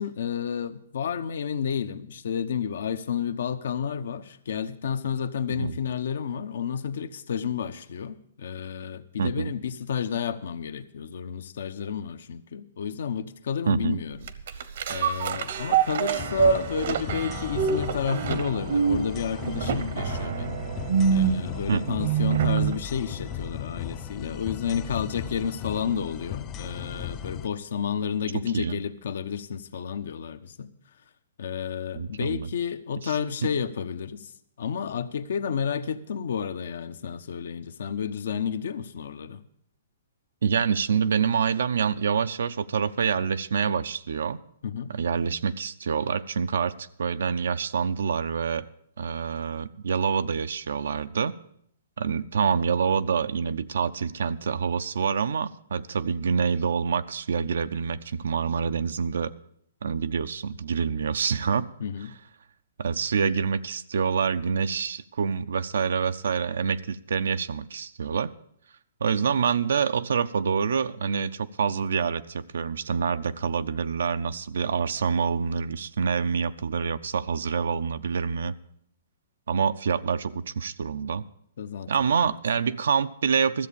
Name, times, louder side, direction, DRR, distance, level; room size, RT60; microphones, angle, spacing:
voice 1, 0.0-14.2 14.9-20.6 21.1-30.7 31.4-34.3 34.6-39.4 44.6-44.9 61.8-62.1 81.6-82.4, left 7 dB, 70° left, 0.8 m, -31 dB
voice 2, 9.2-9.5 13.7-14.0 21.7-22.0 28.5-28.8 31.9-32.5 33.0-33.2 33.4-33.5 40.4-44.4 44.9-48.7 49.0-51.3 52.0-59.3 59.8-61.7 62.8-68.3 69.0-78.5 79.5-81.2 81.9-83.7, right 6 dB, 80° right, 0.5 m, -26 dB
sound 1, 14.2-22.8 23.3-23.4, right 7 dB, 60° right, 0.9 m, -26 dB
sound 2, 16.2-27.5, left 10 dB, 20° left, 0.4 m, -37 dB
13.5 x 7.4 x 6.9 m
hypercardioid pair, 155°, 0 cm